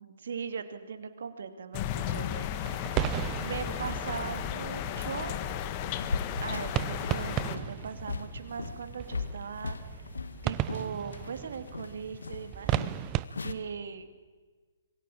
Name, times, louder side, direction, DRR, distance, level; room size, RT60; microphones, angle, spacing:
voice 1, 0.0-2.9 3.4-5.3 6.4-9.8 10.4-12.7 13.0-13.1 13.4-14.2, right 6 dB, 60° right, 8 dB, 2.8 m, -39 dB
sound 1, 1.7-7.6, left 11 dB, 30° left, 1.6 m, -34 dB
sound 2, 2.6-13.2, right 14 dB, 25° right, 0.9 m, -36 dB
sound 3, 6.0-13.5, left 4 dB, 75° left, 1.8 m, -39 dB
26.0 x 21.5 x 8.8 m, 1.4 s
figure-of-eight pair, 135°, 0 cm